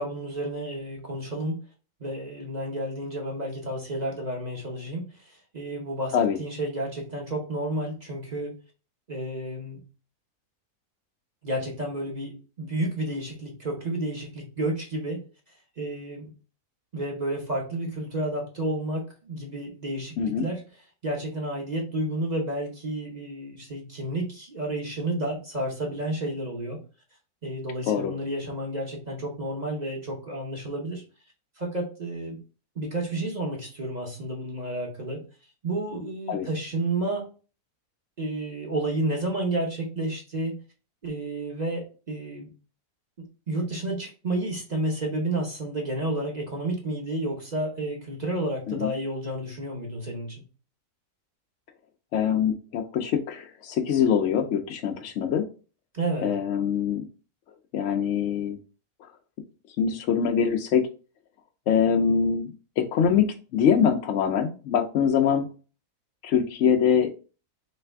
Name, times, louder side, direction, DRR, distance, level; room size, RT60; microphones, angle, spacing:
voice 1, 0.0-1.6 2.0-8.6 9.1-9.8 11.4-15.2 15.8-16.3 16.9-20.1 20.4-20.6 21.0-26.8 27.4-31.0 31.6-32.4 32.8-35.2 35.6-37.3 38.2-40.6 41.0-42.5 43.5-50.4 55.9-56.3, right 1 dB, 35° right, -1 dB, 0.8 m, -31 dB
voice 2, 52.1-55.4 56.2-57.0 57.7-58.6 59.8-60.9 61.7-63.3 63.5-65.5 66.2-67.1, left 7 dB, 65° left, 3 dB, 0.7 m, -23 dB
3.3 x 3.2 x 3.4 m, 0.35 s
omnidirectional pair, 1.6 m